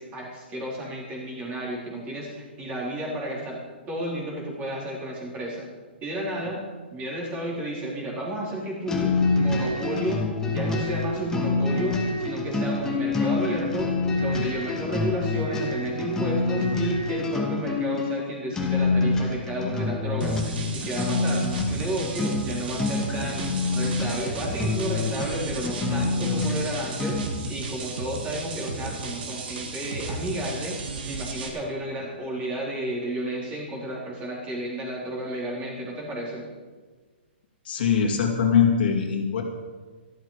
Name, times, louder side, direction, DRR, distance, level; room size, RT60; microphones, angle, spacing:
voice 1, 0.0-3.6 3.9-5.7 6.0-6.6 6.9-10.2 10.5-20.4 20.7-27.2 27.5-30.8 31.1-36.4, right 1 dB, 20° right, -3 dB, 3.9 m, -32 dB
sound 1, 8.9-27.4, left 3 dB, 10° left, 1.4 m, -27 dB
sound 2, 20.2-31.5, right 3 dB, 55° right, 2.4 m, -34 dB
voice 2, 37.6-39.4, left 7 dB, 55° left, 2 dB, 2.4 m, -22 dB
13.5 x 13.0 x 5.0 m, 1.4 s
hypercardioid pair, 155°, 6 cm